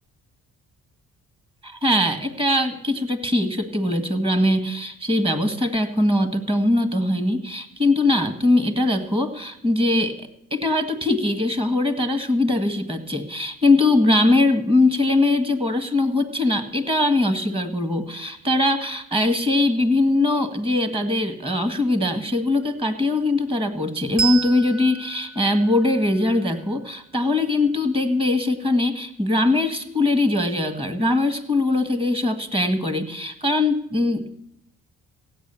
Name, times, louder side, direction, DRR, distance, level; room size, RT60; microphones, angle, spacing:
voice 1, 1.6-10.2 10.5-34.4, left 2 dB, 15° right, 9 dB, 1.7 m, -21 dB
Bell, 24.2-27.3, right 7 dB, 65° right, 2.7 m, -32 dB
16.0 x 8.8 x 7.0 m, 0.77 s
cardioid pair, 90°, 30 cm